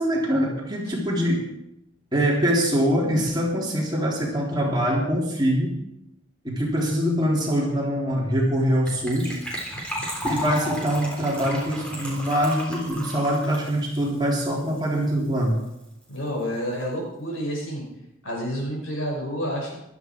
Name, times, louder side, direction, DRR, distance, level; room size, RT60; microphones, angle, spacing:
voice 1, 0.0-1.5 2.1-5.7 6.4-9.4 10.2-15.6, equal, 20° right, -3 dB, 3.6 m, -23 dB
Gurgling / Trickle dribble / Fill (with liquid), 8.9-15.1 15.4-15.5 15.6-15.8 16.1-16.2, equal, 5° left, 3.7 m, -34 dB
voice 2, 16.1-17.9 18.2-19.8, equal, 80° left, -1 dB, 5.9 m, -29 dB
15.5 x 12.5 x 4.7 m, 0.87 s
head